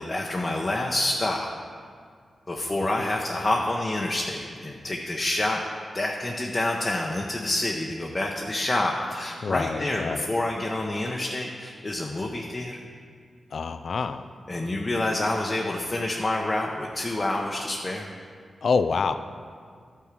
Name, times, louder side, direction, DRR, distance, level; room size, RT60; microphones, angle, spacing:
voice 1, 0.0-1.5 2.5-5.6 5.9-12.8 14.5-18.1, left 1 dB, 30° left, -1 dB, 0.9 m, -28 dB
voice 2, 9.4-10.3 13.5-14.2 18.6-19.1, left 5 dB, 65° left, 10 dB, 0.4 m, -26 dB
12.0 x 4.5 x 7.4 m, 2.1 s
cardioid pair, 70°, 0 cm